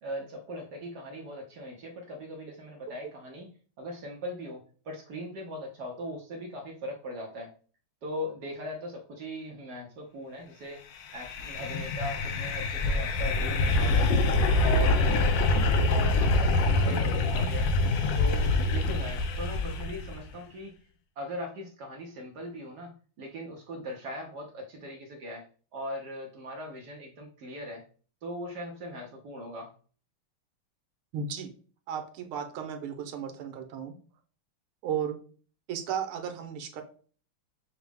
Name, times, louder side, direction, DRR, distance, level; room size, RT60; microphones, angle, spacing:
voice 1, 0.0-3.5 3.8-7.5 8.0-10.8 11.1-14.2 14.6-15.4 15.9-17.7 18.1-20.7 21.2-25.4 25.7-27.8 28.2-29.7, equal, 65° right, 0 dB, 1.0 m, -39 dB
sound 1, 11.0-20.2, left 2 dB, 75° left, 1.2 m, -25 dB
voice 2, 31.1-31.5 31.9-34.0 34.8-35.2 35.7-36.8, right 8 dB, 90° right, 6 dB, 1.6 m, -34 dB
5.8 x 2.0 x 3.4 m, 0.42 s
omnidirectional pair, 2.3 m